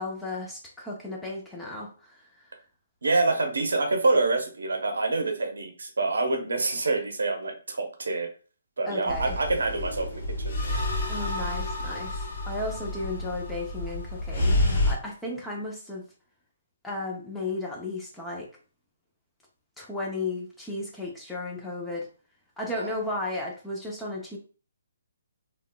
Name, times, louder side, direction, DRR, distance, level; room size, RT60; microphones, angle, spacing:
voice 1, 0.0-2.2 8.9-9.4 11.1-16.0 16.8-18.5 19.8-22.1 22.6-24.4, left 2 dB, 5° left, -3 dB, 0.7 m, -34 dB
voice 2, 3.0-8.3 8.8-10.5 22.8-22.9, right 3 dB, 75° right, 3 dB, 0.8 m, -26 dB
sound 1, 9.1-14.9, left 1 dB, 55° left, 0.9 m, -29 dB
3.5 x 2.3 x 2.2 m, 0.37 s
figure-of-eight pair, 140°, 0 cm